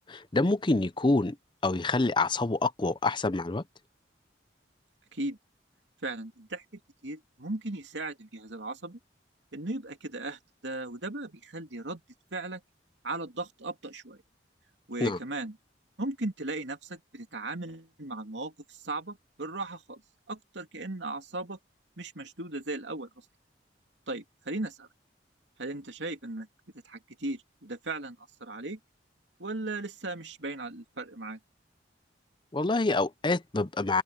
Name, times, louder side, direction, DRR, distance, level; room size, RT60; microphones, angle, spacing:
voice 1, 0.1-1.4 1.6-3.6 15.0-15.2 32.5-34.0, left 2 dB, 25° left, 0.6 m, -26 dB
voice 2, 6.0-9.0 9.5-12.0 12.3-12.6 13.0-14.2 14.9-15.6 16.0-20.0 20.3-21.6 22.0-23.1 24.1-24.9 25.6-26.5 26.8-28.8 29.4-31.4, right 2 dB, 75° right, 2.6 m, -37 dB
open air
head